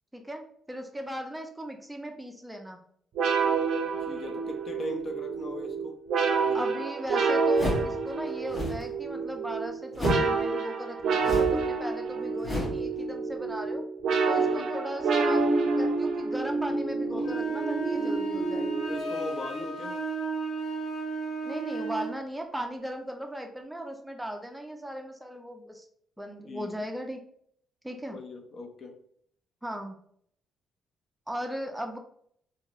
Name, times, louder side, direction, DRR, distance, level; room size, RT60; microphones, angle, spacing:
voice 1, 0.1-2.8 6.5-13.8 14.3-18.7 21.4-25.8 26.2-27.2 27.8-28.2 29.6-30.0 31.3-32.0, equal, 5° right, 4 dB, 0.4 m, -37 dB
sound 1, 3.1-19.4, right 4 dB, 70° right, 0.5 m, -28 dB
voice 2, 4.0-6.0 6.4-6.7 14.3-14.7 17.1-17.3 18.9-20.0 26.5-26.9 28.1-29.0, left 1 dB, 50° left, 5 dB, 0.5 m, -39 dB
sound 2, 7.5-8.0 8.4-8.9 9.9-10.4 11.2-11.7 12.4-12.9, left 1 dB, 30° left, 1.0 m, -31 dB
sound 3, 17.2-22.1, right 4 dB, 75° left, 0.9 m, -33 dB
3.0 x 2.6 x 2.4 m, 0.64 s
cardioid pair, 90°, 0 cm